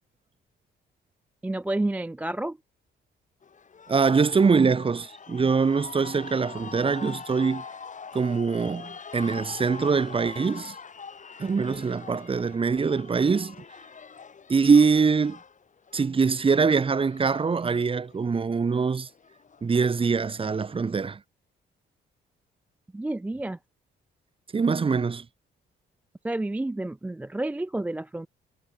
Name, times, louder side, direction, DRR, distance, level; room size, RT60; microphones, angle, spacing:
voice 1, 1.4-2.6 22.9-23.6 26.2-28.3, right 2 dB, 10° right, 0.3 m, -30 dB
sound 1, 3.4-21.0, left 6 dB, 40° left, 3.6 m, -44 dB
voice 2, 3.9-7.6 8.1-10.7 11.4-13.5 14.5-15.4 15.9-19.1 19.6-21.2 24.5-25.2, right 5 dB, 25° right, 0.9 m, -23 dB
cardioid pair, 90°, 20 cm